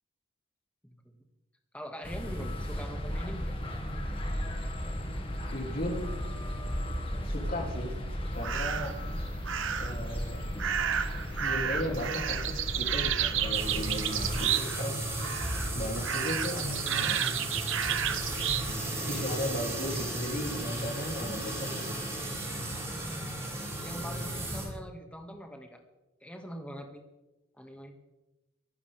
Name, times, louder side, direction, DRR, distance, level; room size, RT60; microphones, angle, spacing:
voice 1, 0.8-1.2 1.7-3.5 22.6-23.3 23.8-25.8 26.2-27.0 27.6-27.9, equal, 5° left, 3 dB, 2.0 m, -43 dB
sound 1, 2.0-14.4, equal, 25° left, 1.9 m, -35 dB
voice 2, 5.5-6.1 7.2-8.0 8.3-9.0 9.8-10.5 11.4-15.1 15.7-17.4 19.1-22.0, left 1 dB, 45° left, 1 dB, 3.0 m, -36 dB
sound 2, 8.4-9.0 9.5-10.0 10.6-14.9 15.2-15.7 16.0-18.7, right 9 dB, 65° right, 0.9 m, -31 dB
sound 3, 13.5-24.7, right 1 dB, 15° right, 5.2 m, -35 dB
25.0 x 12.0 x 3.6 m, 1.1 s
head